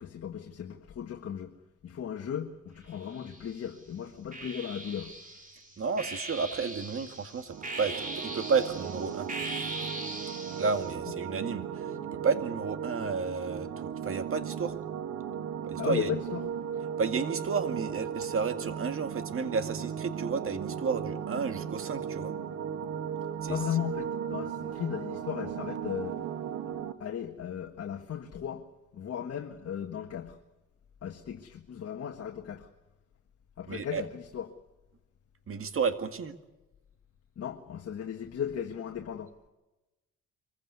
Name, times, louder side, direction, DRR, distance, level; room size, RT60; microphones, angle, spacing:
voice 1, 0.0-1.6 1.8-5.1 15.8-16.5 23.5-26.2 27.0-30.4 31.0-32.7 33.6-34.5 37.4-39.3, left 9 dB, 55° left, 1.6 m, -36 dB
sound 1, 2.9-3.7 4.3-10.9, right 2 dB, 25° right, 4.2 m, -40 dB
voice 2, 5.8-9.3 10.6-14.7 15.6-16.1 17.0-22.3 23.4-23.6 33.7-34.0 35.5-36.4, right 5 dB, 45° right, 2.1 m, -32 dB
sound 2, 7.5-26.9, right 8 dB, 85° right, 2.0 m, -36 dB
24.0 x 15.5 x 9.6 m
cardioid pair, 90°, 30 cm